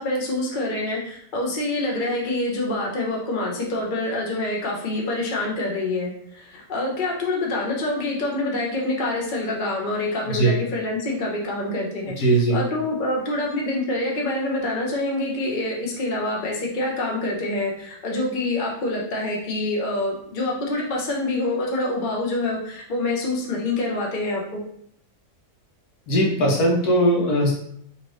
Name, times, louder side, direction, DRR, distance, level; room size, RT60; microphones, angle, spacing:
voice 1, 0.0-24.6, left 2 dB, 75° left, -2 dB, 0.4 m, -26 dB
voice 2, 12.2-12.6 26.1-27.5, right 1 dB, 60° left, -2 dB, 1.2 m, -19 dB
4.2 x 2.8 x 3.1 m, 0.69 s
omnidirectional pair, 2.2 m